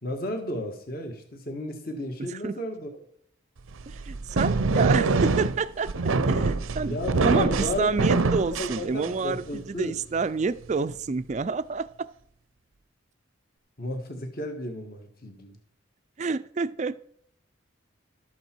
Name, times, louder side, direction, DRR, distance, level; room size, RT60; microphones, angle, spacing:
voice 1, 0.0-2.9 6.9-8.1 8.4-9.9 13.8-15.6, left 1 dB, 45° left, 4 dB, 1.5 m, -33 dB
sound 1, 3.7-9.4, right 3 dB, 85° right, 0.6 m, -24 dB
voice 2, 3.9-5.9 6.3-7.0 7.2-12.1 16.2-16.9, right 4 dB, 35° right, 14 dB, 0.3 m, -28 dB
12.5 x 8.1 x 4.5 m, 0.65 s
head